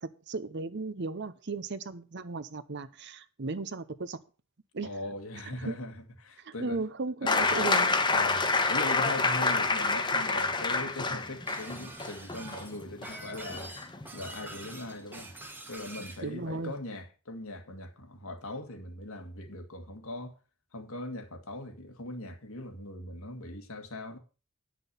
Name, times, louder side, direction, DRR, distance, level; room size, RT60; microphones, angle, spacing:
voice 1, 0.0-4.2 4.7-4.9 5.6-5.7 6.4-7.9 16.2-16.7, right 3 dB, 55° right, 0.8 m, -35 dB
voice 2, 4.8-6.8 7.2-7.5 8.1-13.8 14.1-15.3 15.7-20.3 20.7-24.2, left 1 dB, 75° left, 1.9 m, -40 dB
sound 1, 7.3-14.8 16.0-16.1, left 3 dB, 20° left, 1.1 m, -28 dB
Shatter, 11.5-16.2, right 2 dB, 10° right, 1.3 m, -45 dB
10.0 x 6.2 x 6.8 m
head